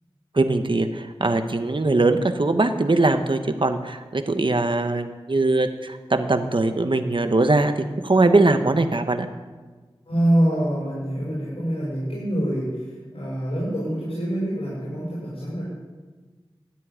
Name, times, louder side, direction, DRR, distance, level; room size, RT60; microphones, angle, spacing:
voice 1, 0.3-9.3, right 2 dB, 55° right, 7 dB, 1.1 m, -21 dB
voice 2, 10.1-15.6, right 1 dB, 75° left, -7 dB, 6.3 m, -25 dB
14.0 x 7.6 x 9.9 m, 1.3 s
wide cardioid pair, 45°, 10 cm